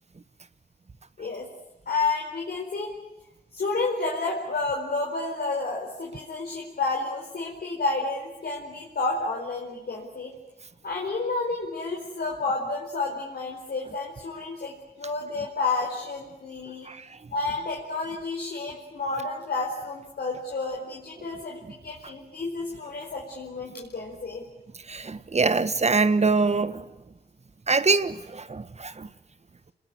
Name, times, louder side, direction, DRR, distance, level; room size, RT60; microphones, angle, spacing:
voice 1, 1.9-2.9 3.5-10.3 10.8-16.9 17.3-24.4, left 3 dB, 65° left, 4.6 m, -30 dB
voice 2, 16.8-17.2 24.9-26.8 27.7-29.1, right 4 dB, 40° right, 1.3 m, -24 dB
28.0 x 21.0 x 9.8 m
cardioid pair, 60°, 17 cm